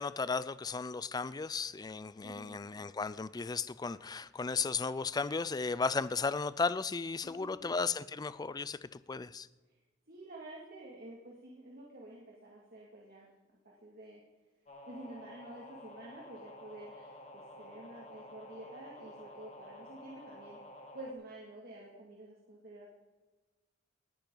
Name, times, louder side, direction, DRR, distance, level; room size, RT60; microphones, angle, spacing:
voice 1, 0.0-9.5, left 4 dB, 20° left, 17 dB, 0.4 m, -35 dB
voice 2, 2.2-2.6 7.2-7.7 10.1-13.3 13.6-14.2 14.9-20.6 20.9-23.0, right 1 dB, 50° right, -3 dB, 2.3 m, -50 dB
sound 1, 14.7-21.1, left 1 dB, 35° left, 1.7 m, -51 dB
19.5 x 10.5 x 3.9 m, 1.2 s
head